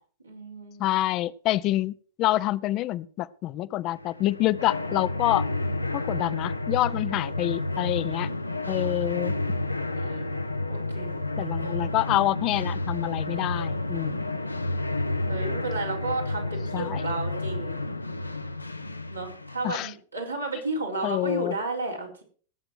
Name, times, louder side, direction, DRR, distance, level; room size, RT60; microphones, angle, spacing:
voice 1, 0.2-0.9 8.6-9.5 10.0-10.4 10.7-11.2 11.6-11.7 15.3-17.8 19.1-22.2, right 3 dB, 90° right, -3 dB, 4.6 m, -33 dB
voice 2, 0.8-1.9 2.2-5.5 5.9-8.3 8.7-9.3 11.4-14.2 16.7-17.0 19.6-19.9 21.0-21.6, left 15 dB, 40° left, 17 dB, 0.5 m, -27 dB
sound 1, 4.0-19.8, left 2 dB, 85° left, 0.7 m, -30 dB
18.5 x 7.9 x 4.7 m, 0.44 s
figure-of-eight pair, 90°, 0 cm